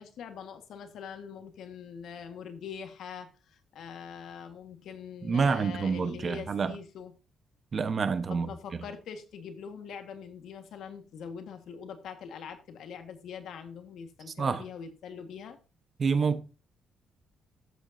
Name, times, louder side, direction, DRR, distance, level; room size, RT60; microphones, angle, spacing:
voice 1, 0.0-7.1 8.3-15.6, left 7 dB, 75° left, 1.6 m, -43 dB
voice 2, 5.2-6.8 7.7-8.5 14.4-14.6 16.0-16.4, right 5 dB, 40° right, 1.1 m, -27 dB
13.0 x 8.2 x 2.7 m
cardioid pair, 110°, 0 cm